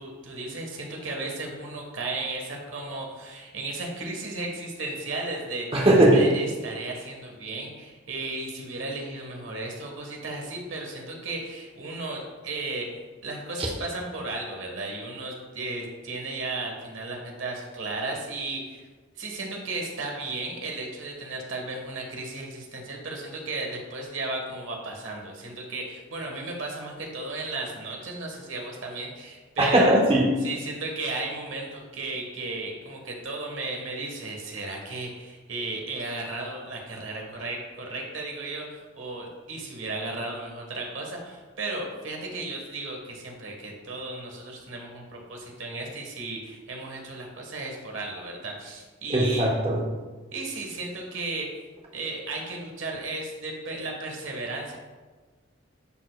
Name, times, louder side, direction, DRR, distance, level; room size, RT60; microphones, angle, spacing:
voice 1, 0.0-5.8 6.1-18.9 19.2-30.0 30.4-49.5 50.3-51.5 51.9-54.8, right 2 dB, 75° right, 0 dB, 1.3 m, -35 dB
voice 2, 5.7-6.3 29.6-30.3 49.1-49.8, right 1 dB, 30° right, -2 dB, 0.9 m, -19 dB
11.0 x 4.5 x 2.2 m, 1.3 s
head